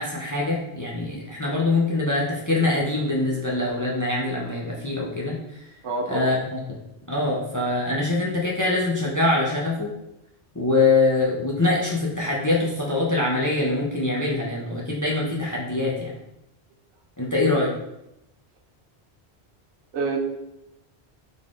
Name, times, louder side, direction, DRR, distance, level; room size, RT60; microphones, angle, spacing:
voice 1, 0.0-5.4 6.1-6.8 7.1-9.9 10.5-16.1 17.2-17.7, left 2 dB, 25° left, -4 dB, 0.4 m, -24 dB
voice 2, 5.8-6.3 19.9-20.2, right 3 dB, 85° right, 2 dB, 0.9 m, -27 dB
4.0 x 3.4 x 2.4 m, 0.87 s
omnidirectional pair, 1.1 m